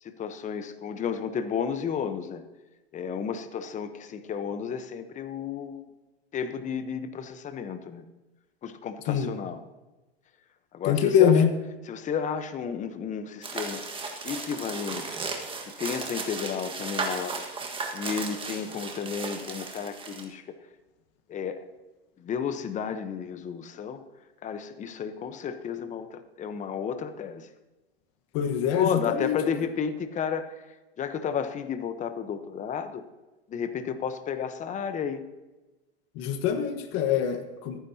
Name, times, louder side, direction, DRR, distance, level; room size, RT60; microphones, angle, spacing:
voice 1, 0.0-2.4 2.9-5.8 6.3-8.0 8.6-9.6 10.7-11.5 11.8-13.8 14.2-15.2 15.7-17.4 17.9-20.6 21.3-21.7 22.2-24.0 24.4-27.5 28.7-33.0 33.5-35.2, left 7 dB, 25° left, 9 dB, 0.9 m, -32 dB
voice 2, 10.9-11.5 28.3-29.4 36.2-37.8, left 8 dB, 45° left, 7 dB, 1.4 m, -23 dB
sound 1, 13.4-20.2, right 4 dB, 15° right, 1.6 m, -35 dB
26.0 x 9.7 x 2.8 m, 1.1 s
hypercardioid pair, 125°, 32 cm